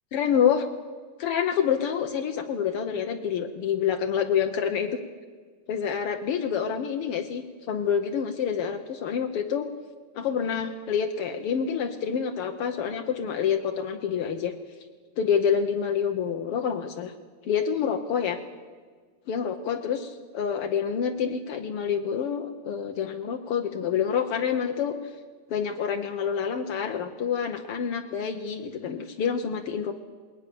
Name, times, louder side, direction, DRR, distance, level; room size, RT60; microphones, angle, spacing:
voice 1, 0.1-0.6 1.2-5.0 5.7-9.7 10.1-14.5 15.2-17.1 17.4-18.4 19.3-25.0 25.5-30.0, left 7 dB, 85° left, 5 dB, 1.2 m, -27 dB
20.5 x 18.5 x 6.9 m, 1.5 s
omnidirectional pair, 3.9 m